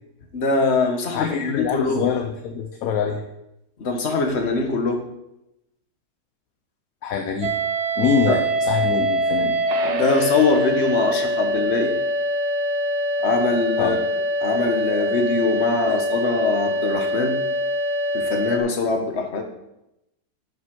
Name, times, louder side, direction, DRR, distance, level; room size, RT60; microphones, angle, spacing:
voice 1, 0.3-2.1 3.8-5.0 8.3-8.4 9.9-11.9 13.2-14.0 14.4-17.4 18.1-19.4, left 3 dB, 45° left, 4 dB, 1.3 m, -22 dB
voice 2, 1.1-3.2 7.0-7.6 8.0-9.6 13.8-14.0 15.9-16.0, left 7 dB, 65° left, 5 dB, 1.0 m, -24 dB
sound 1, 7.4-18.6, equal, 55° right, 0.9 m, -24 dB
7.5 x 5.8 x 6.2 m, 0.86 s
omnidirectional pair, 1.7 m